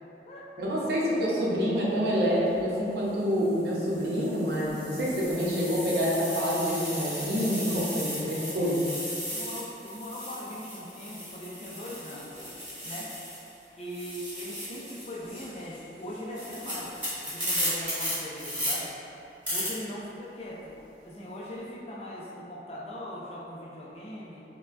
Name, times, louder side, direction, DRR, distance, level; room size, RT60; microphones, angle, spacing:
voice 1, 0.6-8.8, equal, 65° right, -5 dB, 0.7 m, -27 dB
sound 1, 2.4-2.6 3.4-13.5 13.8-18.7 19.4-19.7, equal, 10° right, 1.3 m, -36 dB
voice 2, 8.2-8.8 9.2-12.4 12.8-13.1 13.8-18.9 19.5-20.7 21.0-24.4, left 1 dB, 35° left, -4 dB, 0.5 m, -40 dB
5.5 x 2.2 x 2.5 m, 2.8 s
head